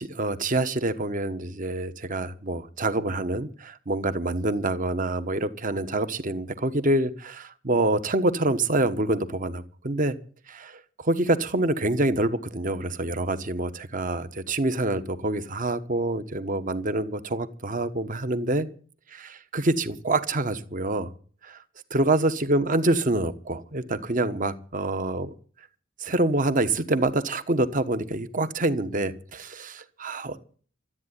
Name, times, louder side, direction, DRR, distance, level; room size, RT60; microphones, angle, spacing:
voice 1, 0.0-10.2 10.5-18.7 19.1-21.1 21.4-21.6 21.9-25.3 26.0-30.5, right 2 dB, 40° right, 1.2 m, -26 dB
13.5 x 8.9 x 9.8 m
head